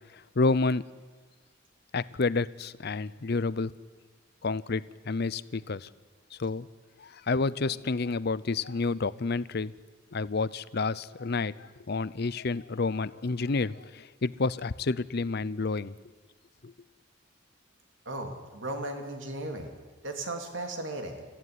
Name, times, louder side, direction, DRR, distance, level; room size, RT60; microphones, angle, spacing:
voice 1, 0.4-0.8 1.9-3.7 4.4-5.9 6.3-6.7 7.0-9.7 10.1-15.9 16.6-16.7, left 3 dB, 55° left, 18 dB, 0.6 m, -29 dB
voice 2, 18.0-19.8 20.0-21.2, right 1 dB, 75° right, 4 dB, 3.1 m, -36 dB
25.5 x 15.0 x 9.7 m, 1.4 s
head